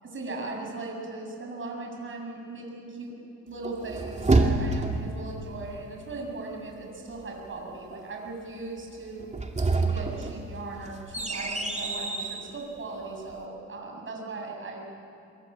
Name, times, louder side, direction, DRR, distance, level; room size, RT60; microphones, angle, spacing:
voice 1, 0.0-3.2 3.4-9.3 9.8-14.8, right 3 dB, 40° right, 0 dB, 7.2 m, -38 dB
sound 1, 3.6-5.1 9.2-12.5, right 3 dB, 20° right, 2.4 m, -27 dB
23.5 x 23.0 x 8.9 m, 2.6 s
cardioid pair, 90°, 30 cm